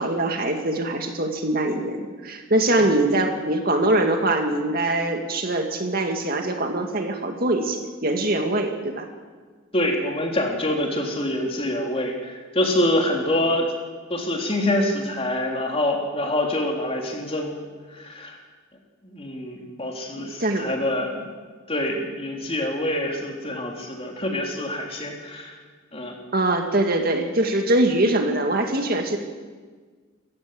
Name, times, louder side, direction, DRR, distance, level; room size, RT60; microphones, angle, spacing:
voice 1, 0.0-9.1 20.2-20.7 26.3-29.2, right 1 dB, 45° right, 4 dB, 2.1 m, -23 dB
voice 2, 9.7-13.7 14.1-18.4 19.0-21.3 21.7-25.6 25.9-26.2, left 1 dB, 30° left, 1 dB, 3.5 m, -26 dB
27.0 x 15.5 x 7.8 m, 1.5 s
head